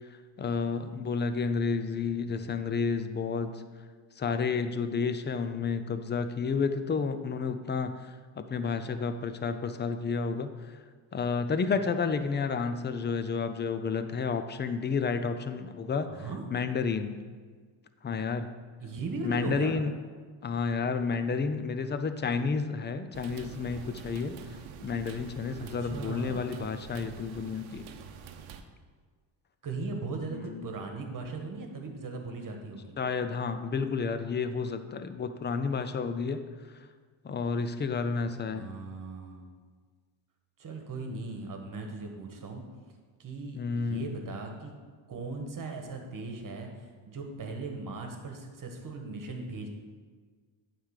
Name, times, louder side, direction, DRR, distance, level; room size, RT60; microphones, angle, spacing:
voice 1, 0.4-3.6 4.2-10.8 11.1-17.3 18.0-18.5 19.2-19.9 20.4-24.4 24.8-27.9 30.3-30.7 33.0-36.4 37.2-38.7 43.5-44.1, left 5 dB, 20° left, 9 dB, 0.5 m, -31 dB
voice 2, 2.2-2.6 16.1-16.4 18.8-19.7 25.6-26.4 29.6-33.0 38.5-39.5 40.6-42.6 43.2-44.7 45.1-49.7, right 3 dB, 40° right, 3 dB, 1.5 m, -38 dB
sound 1, 23.1-28.6, right 7 dB, 70° right, 0.8 m, -46 dB
9.3 x 3.4 x 6.5 m, 1.6 s
cardioid pair, 90°, 49 cm